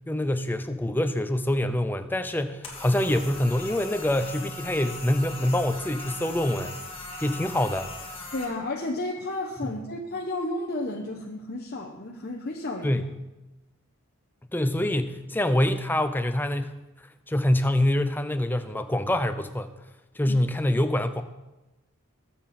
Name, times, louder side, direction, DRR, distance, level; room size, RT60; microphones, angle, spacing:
voice 1, 0.1-6.7 7.2-7.9 9.6-9.7 12.8-13.1 14.5-16.7 17.3-19.7 20.2-21.2, left 1 dB, 10° left, 9 dB, 0.6 m, -25 dB
sound 1, 2.6-8.4, left 2 dB, 25° left, 2.1 m, -39 dB
voice 2, 8.3-13.0 20.3-20.4, left 2 dB, 45° left, 0 dB, 1.0 m, -32 dB
21.0 x 7.4 x 4.3 m, 1.0 s
head